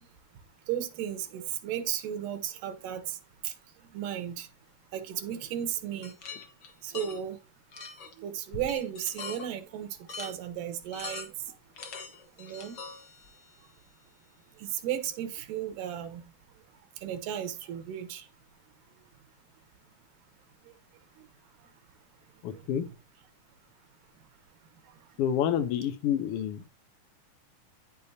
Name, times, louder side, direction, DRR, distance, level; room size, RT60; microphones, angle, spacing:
voice 1, 0.7-3.2 3.4-3.5 3.9-4.5 4.9-6.1 6.8-7.4 8.2-9.9 10.2-11.3 12.4-12.8 14.6-16.2 17.0-18.3 22.5-22.6, right 10 dB, 85° right, 2.6 m, -34 dB
sound 1, 6.0-7.2 7.7-8.1 8.5-9.5 10.1-10.3 10.9-11.5 11.8-13.5, left 4 dB, 60° left, 1.1 m, -42 dB
voice 2, 22.4-22.8 25.2-26.7, left 9 dB, 80° left, 1.3 m, -28 dB
9.5 x 6.8 x 2.7 m
omnidirectional pair, 3.7 m